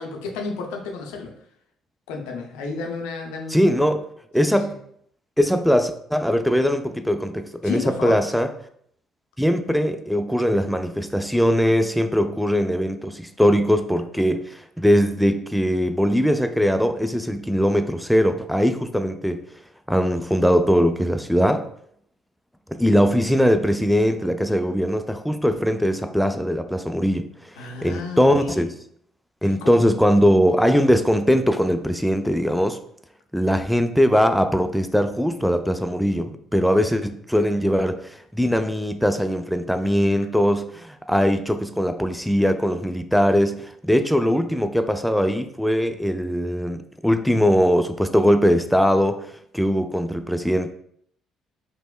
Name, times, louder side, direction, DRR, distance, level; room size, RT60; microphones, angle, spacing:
voice 1, 0.0-1.3 2.1-3.9 4.4-4.8 7.6-8.2 27.6-28.5 29.4-29.8, left 4 dB, 75° left, 0.5 m, -32 dB
voice 2, 3.5-4.1 4.3-4.8 5.4-8.5 9.4-19.4 19.9-21.7 22.7-28.8 29.4-32.8 33.3-50.7, equal, ahead, 0.3 m, -21 dB
5.1 x 2.1 x 2.2 m
hypercardioid pair, 50°, 0 cm